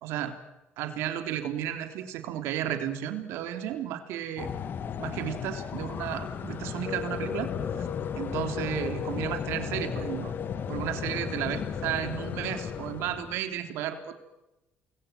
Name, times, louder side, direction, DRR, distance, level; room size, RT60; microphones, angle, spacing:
voice 1, 0.0-0.3 0.8-4.5 5.0-7.5 7.8-7.9 8.1-10.3 10.7-14.1, right 11 dB, 85° right, 7 dB, 3.3 m, -33 dB
sound 1, 4.4-13.4, left 7 dB, 55° left, 2.1 m, -34 dB
28.5 x 21.0 x 9.3 m, 0.98 s
cardioid pair, 95°, 4 cm